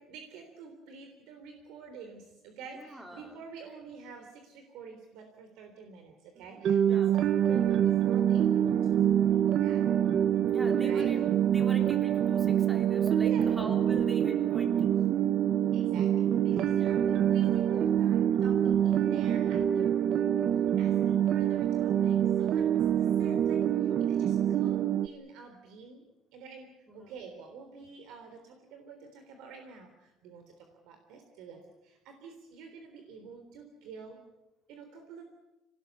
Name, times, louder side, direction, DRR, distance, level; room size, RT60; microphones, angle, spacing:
voice 1, 0.0-9.8 10.8-11.2 13.2-13.6 15.7-22.7 23.0-26.0 26.3-26.7 26.9-34.2 34.7-35.2, right 5 dB, 75° right, 5 dB, 3.6 m, -48 dB
voice 2, 2.7-3.4 6.8-7.1 10.4-15.0 16.8-17.0 26.9-27.1, equal, 5° right, 4 dB, 3.4 m, -44 dB
sound 1, 6.6-25.1, right 10 dB, 45° right, 1.0 m, -26 dB
26.5 x 19.0 x 8.3 m, 1.0 s
cardioid pair, 160°, 0 cm